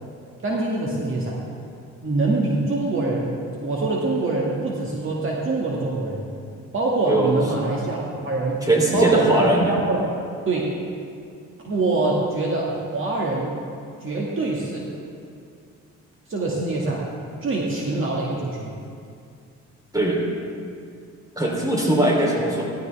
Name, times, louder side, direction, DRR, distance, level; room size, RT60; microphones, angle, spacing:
voice 1, 0.4-1.4 2.0-6.3 6.7-8.6 8.9-10.1 10.5-10.7 11.6-13.6 14.0-14.9 16.3-17.1 17.4-18.7, right 2 dB, 45° right, -3 dB, 2.0 m, -24 dB
voice 2, 8.7-9.7 19.9-20.2 21.4-22.6, right 1 dB, 10° right, -2 dB, 3.3 m, -20 dB
16.5 x 13.5 x 3.5 m, 2.4 s
cardioid pair, 90°, 30 cm